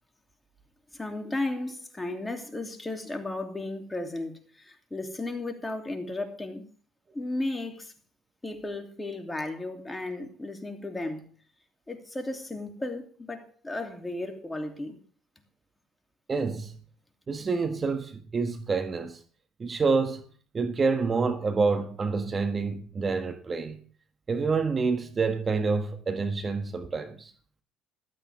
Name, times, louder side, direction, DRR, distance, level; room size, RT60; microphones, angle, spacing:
voice 1, 0.9-6.7 7.1-7.9 8.4-11.3 11.9-15.0, left 2 dB, 15° left, 2.9 m, -34 dB
voice 2, 16.3-16.7 17.3-19.2 19.6-20.2 20.5-23.8 24.3-27.3, right 4 dB, 35° right, 1.5 m, -27 dB
14.5 x 13.0 x 3.5 m
hypercardioid pair, 65°, 0 cm